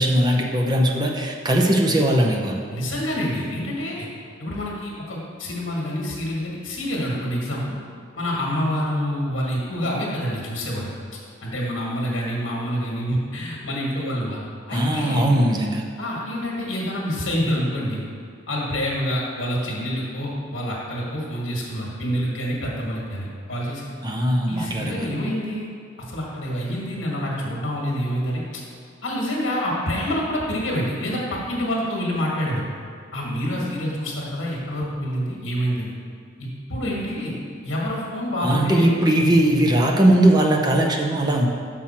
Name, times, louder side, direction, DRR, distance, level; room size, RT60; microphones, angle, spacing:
voice 1, 0.0-2.5 14.7-15.8 24.0-25.1 38.4-41.5, right 1 dB, 20° right, 0 dB, 0.6 m, -19 dB
voice 2, 2.7-4.1 4.4-7.8 8.2-10.9 11.4-15.3 16.0-18.0 18.5-23.9 24.5-25.7 26.1-28.4 29.0-32.7 33.1-35.9 36.4-37.3 37.6-38.9, equal, 70° left, -4 dB, 1.5 m, -27 dB
6.1 x 5.7 x 4.3 m, 2.2 s
head